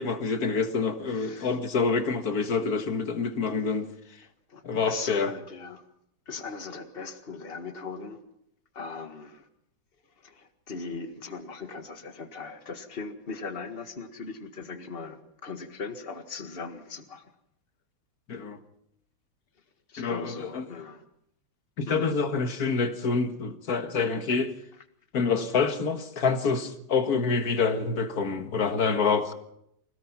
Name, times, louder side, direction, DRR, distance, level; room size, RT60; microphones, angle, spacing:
voice 1, 0.0-3.9 4.6-5.3 18.3-18.6 20.0-20.6 21.8-24.5 25.1-29.3, left 4 dB, 45° left, 1.9 m, -27 dB
voice 2, 1.1-1.5 3.7-3.8 4.5-5.8 6.3-8.2 8.7-9.5 10.2-17.3 19.9-21.0 21.9-22.1, left 4 dB, 30° left, 1.8 m, -39 dB
26.0 x 17.5 x 5.9 m
omnidirectional pair, 2.3 m